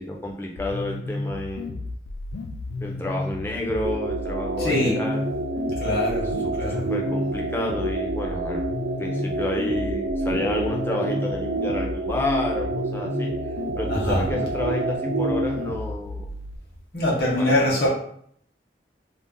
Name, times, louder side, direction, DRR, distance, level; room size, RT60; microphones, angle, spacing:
voice 1, 0.0-1.8 2.8-5.2 6.4-8.7 9.0-13.3 13.7-16.3 17.1-17.9, left 1 dB, 15° left, 0 dB, 0.4 m, -30 dB
sound 1, 0.6-16.6, left 2 dB, 85° left, 0.3 m, -33 dB
sound 2, 3.8-15.7, right 2 dB, 80° right, 0.5 m, -28 dB
voice 2, 4.6-5.0 5.8-6.9 13.9-14.3 16.9-17.9, left 1 dB, 60° left, -4 dB, 0.9 m, -23 dB
2.5 x 2.0 x 3.6 m, 0.65 s
head